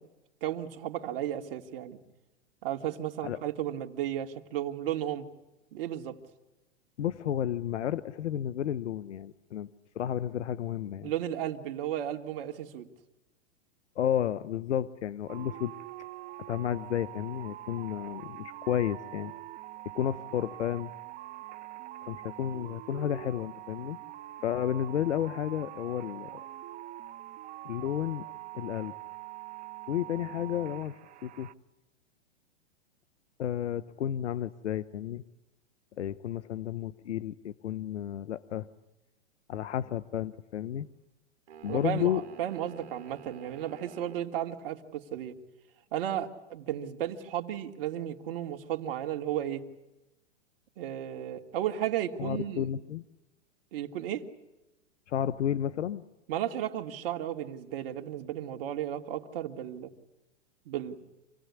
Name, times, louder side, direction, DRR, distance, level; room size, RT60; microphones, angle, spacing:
voice 1, 0.4-2.0 2.6-5.3 5.7-6.2 11.0-12.9 41.7-45.3 45.9-49.6 50.8-52.7 53.7-54.2 56.3-59.9 60.7-61.0, right 11 dB, 55° right, 6 dB, 2.5 m, -34 dB
voice 2, 7.0-11.1 14.0-15.7 16.5-19.3 19.9-20.9 22.1-24.0 24.4-26.4 27.6-28.2 28.5-28.9 29.9-31.5 33.4-35.2 36.0-38.7 39.5-40.9 41.6-42.2 52.2-53.0 55.1-56.0, left 10 dB, 85° left, 16 dB, 1.0 m, -32 dB
sound 1, 15.3-31.5, right 16 dB, 25° right, 0.8 m, -44 dB
sound 2, 41.5-44.3, right 7 dB, 75° right, 2.7 m, -49 dB
27.5 x 17.5 x 9.8 m, 1.0 s
hypercardioid pair, 135°, 35 cm